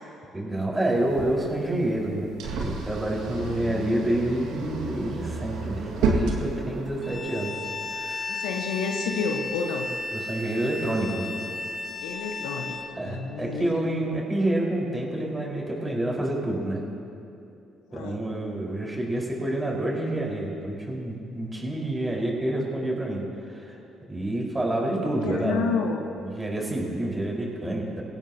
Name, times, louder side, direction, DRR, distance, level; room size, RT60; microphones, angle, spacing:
voice 1, 0.3-2.3 2.6-7.6 7.9-8.4 10.1-11.3 13.0-16.8 17.9-23.2 23.5-23.7 24.1-25.7 26.2-28.0, right 1 dB, 15° right, -2 dB, 4.9 m, -28 dB
sound 1, 0.9-7.2, right 3 dB, 70° right, 2.0 m, -31 dB
voice 2, 3.3-4.1 8.3-9.9 12.0-12.8 13.0-13.7 17.9-18.2 24.9-26.0, left 5 dB, 70° left, 3 dB, 1.2 m, -31 dB
Bowed string instrument, 7.0-12.9, left 3 dB, 30° left, 1.8 m, -34 dB
28.0 x 16.5 x 3.0 m, 2.7 s
hypercardioid pair, 50°, 0 cm